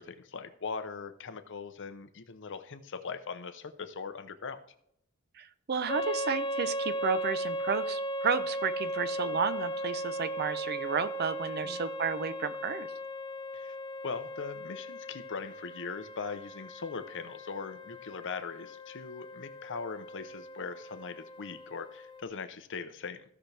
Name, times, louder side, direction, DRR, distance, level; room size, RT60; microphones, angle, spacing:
voice 1, 0.0-4.6 11.6-11.8 13.5-13.8 14.0-23.2, left 5 dB, 55° left, 10 dB, 0.7 m, -40 dB
voice 2, 5.4-12.9, right 5 dB, 45° right, 13 dB, 0.6 m, -32 dB
sound 1, 5.9-22.2, right 1 dB, 20° left, 0.4 m, -37 dB
15.5 x 5.9 x 3.4 m, 0.74 s
head